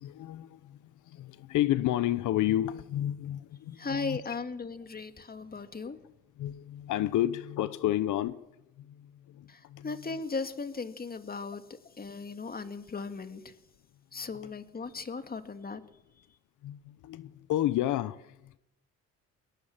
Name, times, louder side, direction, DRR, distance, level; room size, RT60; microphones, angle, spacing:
voice 1, 0.0-4.2 6.4-8.4 8.8-9.9 16.6-18.6, left 13 dB, 80° left, 0.9 m, -31 dB
voice 2, 3.7-6.0 9.5-13.5 14.1-15.8, left 4 dB, 30° left, 2.2 m, -37 dB
22.5 x 19.0 x 7.4 m
cardioid pair, 90°, 30 cm